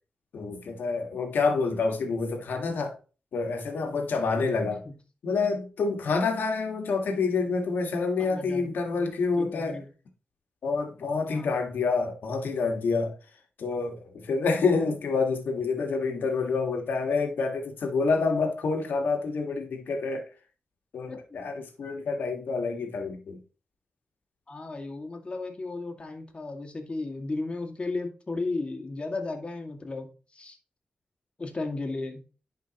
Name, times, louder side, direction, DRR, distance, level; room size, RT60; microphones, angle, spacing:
voice 1, 0.3-2.9 3.3-4.8 5.2-9.8 10.6-13.1 13.6-20.3 20.9-23.4, left 4 dB, 90° left, 1.7 m, -28 dB
voice 2, 8.2-8.7 9.4-9.9 11.2-11.5 21.1-21.2 24.5-30.6 31.4-32.2, left 3 dB, 35° left, 2.0 m, -34 dB
10.5 x 5.1 x 3.0 m
cardioid pair, 75°, 3 cm